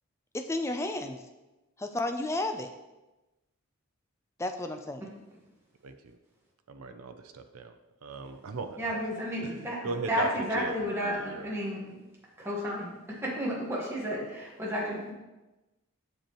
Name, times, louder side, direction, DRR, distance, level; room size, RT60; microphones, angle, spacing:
voice 1, 0.3-1.2 1.8-2.7 4.4-5.1, left 2 dB, 15° left, 6 dB, 0.4 m, -32 dB
voice 2, 6.7-7.7 8.0-8.7 9.4-9.6 9.8-10.3 10.5-10.8 11.2-11.5, right 4 dB, 85° right, 8 dB, 0.6 m, -37 dB
voice 3, 8.8-11.8 12.4-15.1, equal, 10° right, -5 dB, 1.3 m, -32 dB
7.7 x 6.6 x 3.0 m, 1.1 s
head